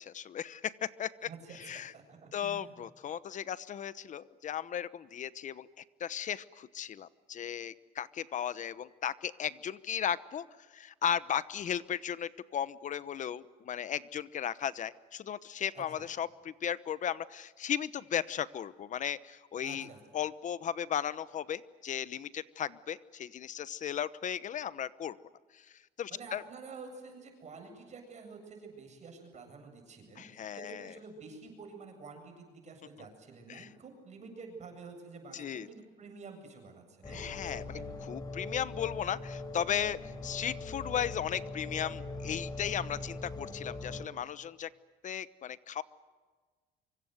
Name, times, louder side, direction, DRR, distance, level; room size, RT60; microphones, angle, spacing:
voice 1, 0.0-1.1 1.5-1.9 2.3-19.9 20.1-25.2 25.5-26.4 30.2-30.9 33.5-33.7 35.3-35.7 37.1-44.7 45.0-45.8, left 9 dB, 50° left, 16 dB, 1.0 m, -36 dB
voice 2, 1.2-2.7 15.7-16.1 19.6-20.0 26.1-37.8, right 4 dB, 45° right, 5 dB, 7.9 m, -49 dB
sound 1, 37.0-44.1, left 2 dB, 25° left, 3.7 m, -41 dB
25.5 x 24.5 x 8.1 m, 1.4 s
cardioid pair, 110°, 17 cm